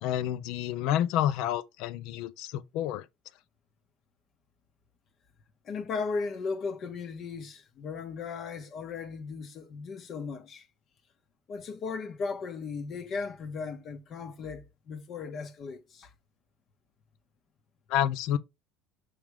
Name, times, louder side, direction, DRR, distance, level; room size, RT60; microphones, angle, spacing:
voice 1, 0.0-3.1 17.9-18.4, left 11 dB, 65° left, 0.7 m, -29 dB
voice 2, 5.6-10.6 11.5-16.1, left 4 dB, 45° left, 1.4 m, -36 dB
5.8 x 5.1 x 3.5 m
hypercardioid pair, 80°, 0 cm